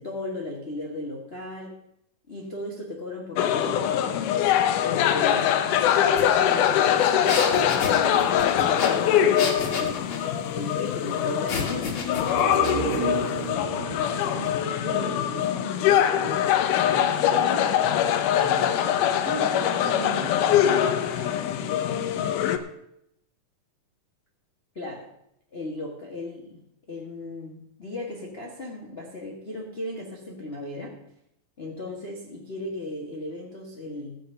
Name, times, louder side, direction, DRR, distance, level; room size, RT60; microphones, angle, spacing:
voice 1, 0.0-1.7 2.3-4.2 4.8-5.6 6.3-10.0 10.5-12.0 24.7-25.1 25.5-26.6 26.9-31.0 31.6-34.2, left 2 dB, 30° left, -1 dB, 1.1 m, -36 dB
sound 1, 3.4-22.6, left 10 dB, 85° left, 2.3 m, -23 dB
sound 2, 6.2-6.3 6.6-10.3 11.5-13.0, left 4 dB, 50° left, 2.3 m, -31 dB
sound 3, 12.1-15.8 16.2-16.3, right 6 dB, 90° right, 3.3 m, -34 dB
voice 2, 12.4-16.5 16.9-22.3, right 2 dB, 35° right, 0 dB, 3.1 m, -39 dB
13.5 x 8.1 x 5.6 m, 0.76 s
omnidirectional pair, 3.6 m